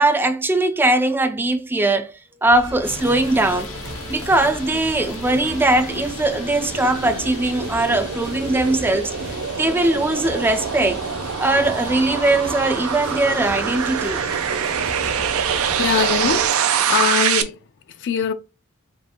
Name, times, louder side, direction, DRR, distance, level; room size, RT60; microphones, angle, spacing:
voice 1, 0.0-3.7 4.1-11.1 11.4-14.2, right 2 dB, 10° right, 0.3 m, -20 dB
sound 1, 2.5-16.5, right 2 dB, 55° right, 1.0 m, -36 dB
sound 2, 2.8-16.3, left 4 dB, 80° left, 0.8 m, -37 dB
sound 3, 4.2-17.4, right 8 dB, 85° right, 0.5 m, -25 dB
voice 2, 15.8-17.6 18.0-18.3, left 7 dB, 55° left, 0.4 m, -22 dB
5.4 x 2.5 x 2.8 m
head